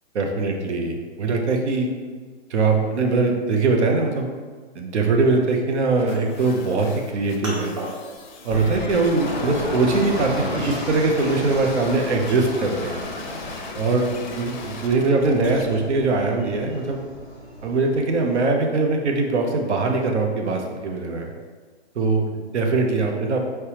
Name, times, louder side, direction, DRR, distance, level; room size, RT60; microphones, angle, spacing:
voice 1, 0.1-1.9 2.5-4.3 4.7-7.8 8.4-13.0 13.8-17.0 17.6-21.3 22.0-22.2 22.5-23.4, right 3 dB, 80° right, 3 dB, 0.8 m, -22 dB
sound 1, 6.0-15.6, left 3 dB, 45° left, 0.5 m, -38 dB
sound 2, 6.1-13.0 13.4-16.3, equal, 30° right, 0.8 m, -40 dB
sound 3, 8.5-18.4, equal, 15° right, 1.2 m, -34 dB
4.5 x 3.4 x 2.9 m, 1.5 s
hypercardioid pair, 180°, 34 cm